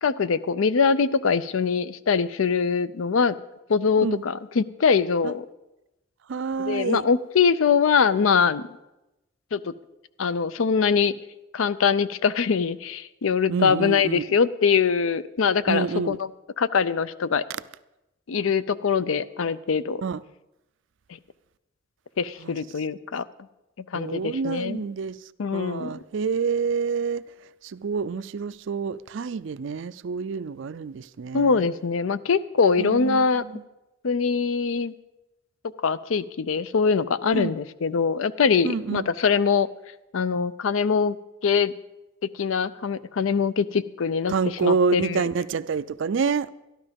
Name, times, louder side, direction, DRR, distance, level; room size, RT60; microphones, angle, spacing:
voice 1, 0.0-3.4 3.7-5.4 6.6-8.7 9.5-9.7 10.2-11.1 11.5-16.2 16.6-17.4 18.3-20.0 22.2-23.2 23.9-24.8 25.4-25.9 31.3-33.4 34.0-34.9 35.8-39.7 40.1-41.2 41.4-41.7 42.2-44.3 44.6-45.2, left 5 dB, 75° left, 0.5 m, -23 dB
voice 2, 6.3-7.0 13.5-14.2 15.7-16.2 20.0-20.2 22.4-22.5 23.9-27.2 27.6-31.7 32.8-33.6 37.3-37.5 38.6-39.1 44.3-46.5, right 5 dB, 60° right, 0.4 m, -28 dB
13.0 x 12.0 x 5.2 m
head